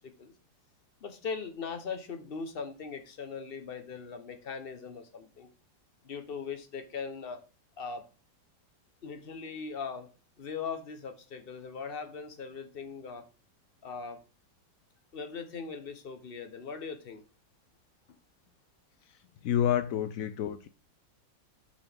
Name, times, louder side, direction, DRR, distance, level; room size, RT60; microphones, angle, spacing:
voice 1, 1.0-5.5 6.0-7.4 7.8-8.0 9.0-10.1 10.4-13.2 13.8-14.2 15.1-17.2, left 5 dB, 35° left, 8 dB, 1.1 m, -40 dB
voice 2, 19.4-20.7, left 10 dB, 75° left, 12 dB, 0.7 m, -28 dB
7.1 x 5.3 x 3.5 m, 0.35 s
omnidirectional pair, 2.0 m